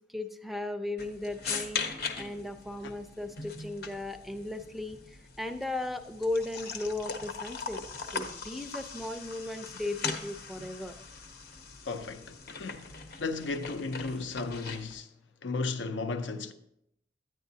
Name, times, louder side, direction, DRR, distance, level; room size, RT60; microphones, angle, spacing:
voice 1, 0.1-1.8 2.2-7.8 8.1-10.9, left 2 dB, ahead, 0.4 m, -36 dB
sound 1, 1.0-15.0, left 5 dB, 60° left, 0.8 m, -40 dB
voice 2, 11.9-15.1 15.4-16.5, left 3 dB, 85° left, 0.6 m, -35 dB
9.8 x 9.1 x 2.7 m
head